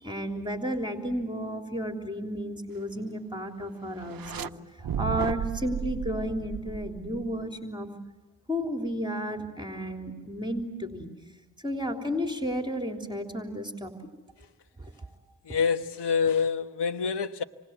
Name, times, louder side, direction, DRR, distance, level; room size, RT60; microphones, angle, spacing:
voice 1, 0.0-4.5 4.8-7.9 8.5-11.1 11.6-13.9 14.8-15.1, equal, 10° right, 3.5 m, -32 dB
sound 1, 4.0-4.5 4.8-7.4, right 9 dB, 55° right, 0.9 m, -34 dB
voice 2, 15.4-17.4, left 6 dB, 70° left, 1.3 m, -27 dB
28.0 x 24.5 x 8.2 m
cardioid pair, 60°, 42 cm